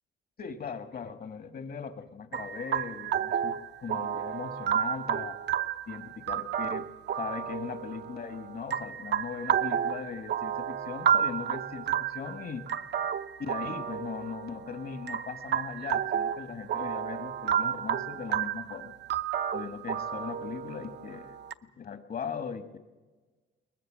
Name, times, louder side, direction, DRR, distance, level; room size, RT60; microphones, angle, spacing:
voice 1, 0.4-5.4 5.9-6.9 7.2-12.7 13.4-19.0 19.5-21.4 21.8-22.8, left 6 dB, 50° left, 9 dB, 1.7 m, -39 dB
sound 1, 2.3-21.5, right 9 dB, 60° right, 0.8 m, -32 dB
22.0 x 19.5 x 7.5 m, 1.3 s
cardioid pair, 90°, 20 cm